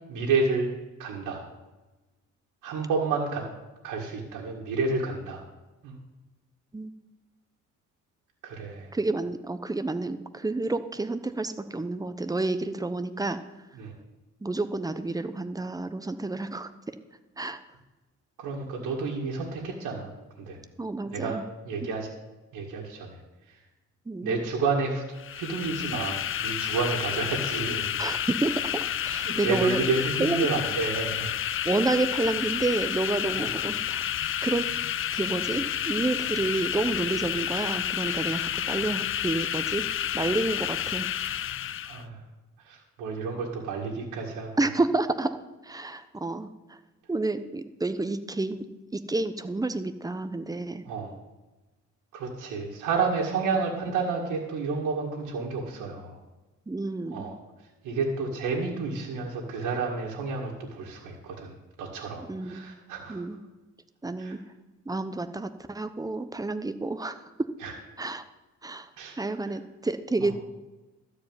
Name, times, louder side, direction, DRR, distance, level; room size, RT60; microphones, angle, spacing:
voice 1, 0.1-0.7 1.0-1.4 2.6-3.4 3.8-5.4 5.8-6.0 8.4-8.9 13.8-13.9 18.4-20.1 20.4-20.6 21.1-21.4 21.6-22.1 22.5-23.2 24.2-25.0 25.3-27.9 29.2-31.4 33.4-33.5 41.8-42.2 42.7-44.5 50.9-51.1 52.1-56.2 57.1-57.3 57.8-61.5 61.8-63.2 64.2-64.3 67.6-67.7 69.0-69.2, right 4 dB, 90° right, -3 dB, 2.1 m, -30 dB
voice 2, 8.9-13.4 14.4-16.9 17.4-17.6 20.8-21.4 21.8-22.0 24.1-24.4 28.0-29.8 30.2-30.5 31.6-34.1 34.4-34.7 35.1-39.9 40.1-41.1 44.6-45.3 45.6-46.8 47.1-48.7 48.9-50.8 56.7-57.4 62.3-62.7 63.1-63.4 64.0-64.4 64.9-67.5 68.0-68.2 68.6-68.9 69.2-70.3, right 2 dB, 10° right, 10 dB, 0.8 m, -29 dB
sound 1, 25.2-42.0, left 10 dB, 45° left, 0.4 m, -30 dB
13.0 x 4.9 x 8.9 m, 1.1 s
cardioid pair, 90°, 30 cm